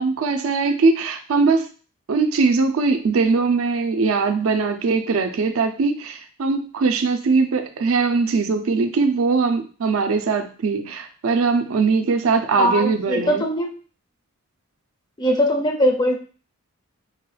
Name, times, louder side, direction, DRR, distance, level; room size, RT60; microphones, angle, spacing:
voice 1, 0.0-1.7 2.1-13.4, right 4 dB, 70° right, 6 dB, 0.4 m, -21 dB
voice 2, 12.6-13.7 15.2-16.2, equal, 20° left, 3 dB, 0.4 m, -20 dB
4.6 x 2.2 x 3.1 m, 0.39 s
head